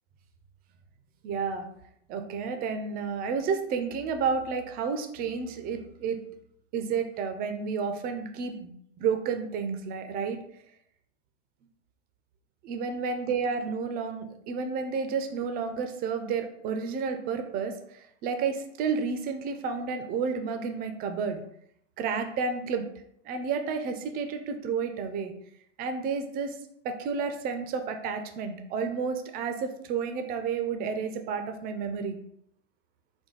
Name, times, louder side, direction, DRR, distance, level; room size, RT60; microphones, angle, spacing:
voice 1, 1.2-1.7 2.1-6.2 6.7-8.7 9.0-10.4 12.6-17.7 18.2-21.4 22.0-22.9 23.3-25.3 25.8-26.5 26.8-32.2, right 5 dB, 25° right, 7 dB, 0.5 m, -31 dB
4.2 x 2.2 x 3.9 m, 0.70 s
figure-of-eight pair, 95°, 37 cm